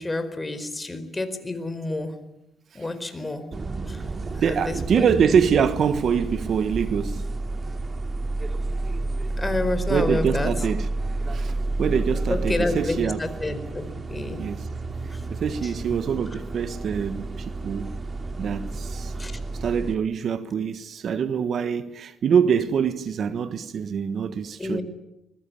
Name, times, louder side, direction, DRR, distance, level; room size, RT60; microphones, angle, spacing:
voice 1, 0.0-2.1 2.7-3.4 3.9-4.0 4.4-5.1 5.6-5.7 9.4-10.5 12.3-14.4 15.1-15.2 15.6-15.7 19.2-19.4 24.6-24.8, left 2 dB, 20° left, 4.5 m, -29 dB
sound 1, 3.5-19.9, right 2 dB, 35° right, 2.5 m, -30 dB
voice 2, 4.3-7.2 9.9-10.9 11.3-13.2 14.4-14.6 15.3-18.0 18.4-19.1 19.5-24.8, right 7 dB, 60° right, 1.4 m, -24 dB
24.5 x 22.0 x 8.7 m
cardioid pair, 90°, 0 cm